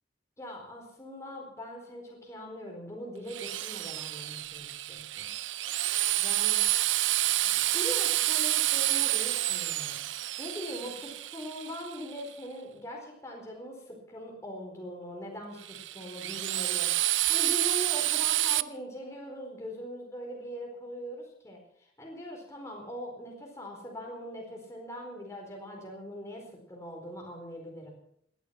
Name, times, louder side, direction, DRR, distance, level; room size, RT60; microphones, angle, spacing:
voice 1, 0.4-5.3 6.2-6.7 7.7-21.6 22.0-27.9, equal, 15° left, -1 dB, 4.5 m, -41 dB
Drill, 3.3-12.2 15.6-18.6, right 16 dB, 90° right, 0.6 m, -29 dB
18.5 x 12.5 x 5.9 m, 0.67 s
head